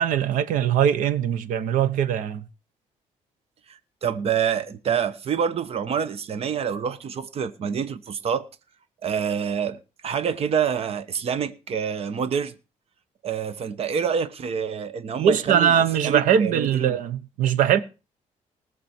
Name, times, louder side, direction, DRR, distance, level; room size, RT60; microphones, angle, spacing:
voice 1, 0.0-2.5 15.2-17.8, right 9 dB, 90° right, 1.0 m, -21 dB
voice 2, 3.7-8.5 9.0-12.5 13.2-15.7 16.0-16.9, right 7 dB, 50° right, 1.0 m, -27 dB
19.5 x 6.8 x 4.4 m
cardioid pair, 120°, 13 cm